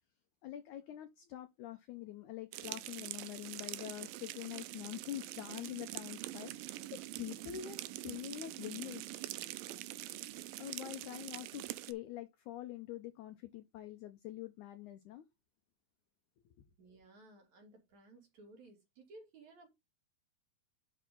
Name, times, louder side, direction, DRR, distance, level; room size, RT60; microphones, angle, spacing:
voice 1, 0.4-9.0 10.6-15.2 16.4-16.6, left 13 dB, 85° left, 1.7 m, -45 dB
sound 1, 2.5-11.9, right 16 dB, 80° right, 2.1 m, -44 dB
voice 2, 16.8-19.7, right 2 dB, 50° right, 3.9 m, -58 dB
10.5 x 4.6 x 3.9 m
omnidirectional pair, 4.5 m